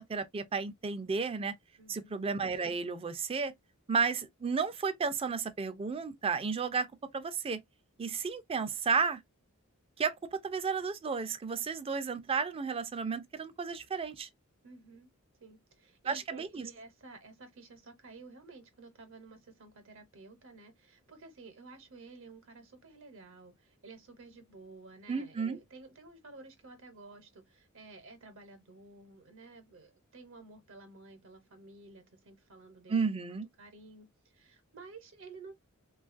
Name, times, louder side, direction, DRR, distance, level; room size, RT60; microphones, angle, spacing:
voice 1, 0.0-1.5 1.9-3.5 3.9-6.9 7.1-7.6 8.0-9.2 10.0-14.3 16.1-16.7 25.1-25.6 32.9-33.5, right 5 dB, 25° right, 0.4 m, -33 dB
voice 2, 1.8-2.2 14.6-15.1 15.4-33.0 33.6-35.6, right 3 dB, 65° right, 0.7 m, -52 dB
3.1 x 2.3 x 2.4 m
head